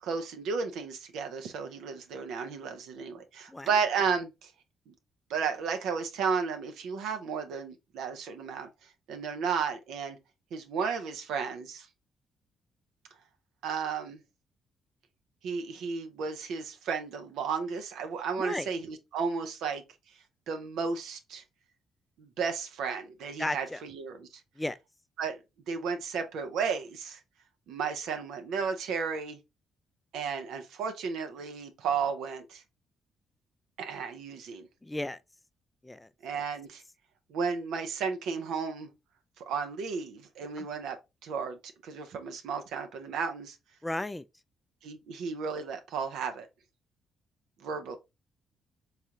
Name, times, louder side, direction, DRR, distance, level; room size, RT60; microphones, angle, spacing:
voice 1, 0.0-4.5 4.9-5.0 5.3-8.7 9.1-10.2 10.5-11.9 13.6-14.2 15.4-19.8 20.5-21.4 22.2-24.4 25.2-25.4 25.7-27.2 27.7-29.4 30.1-32.6 33.8-34.7 36.2-36.8 37.3-38.9 39.4-41.0 41.2-41.6 41.8-43.6 44.8-46.5 47.6-48.0, right 5 dB, 85° right, 0.6 m, -33 dB
voice 2, 18.4-18.7 23.4-23.8 24.6-24.8 34.8-35.2 35.8-36.1 40.6-40.7 43.8-44.2, left 1 dB, 15° left, 0.3 m, -34 dB
3.6 x 3.2 x 2.8 m
cardioid pair, 90°, 0 cm